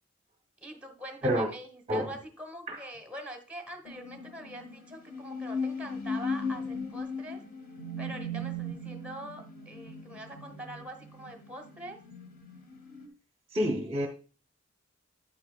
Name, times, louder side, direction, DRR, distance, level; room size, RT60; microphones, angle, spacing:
voice 1, 0.6-7.4 8.0-12.0, right 1 dB, 5° right, 1.0 m, -44 dB
sound 1, 3.9-13.1, left 2 dB, 40° left, 1.4 m, -38 dB
voice 2, 13.5-14.1, equal, 25° right, 0.7 m, -28 dB
8.9 x 8.3 x 2.3 m
head